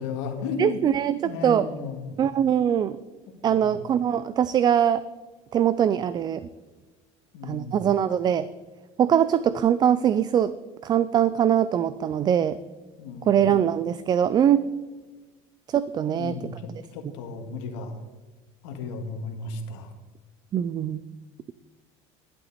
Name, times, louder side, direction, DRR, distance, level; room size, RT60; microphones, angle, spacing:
voice 1, 0.0-0.8 1.2-2.2 3.5-3.8 7.3-7.9 13.0-13.4 16.1-18.0 18.6-19.9, left 4 dB, 90° left, 4 dB, 2.0 m, -34 dB
voice 2, 0.6-1.7 2.2-3.0 3.4-5.0 5.5-6.5 7.4-8.5 9.0-10.6 10.8-12.6 13.3-14.6 15.7-16.5 20.5-21.0, right 9 dB, 30° right, 15 dB, 0.3 m, -22 dB
11.0 x 11.0 x 4.2 m, 1.3 s
cardioid pair, 135°, 15 cm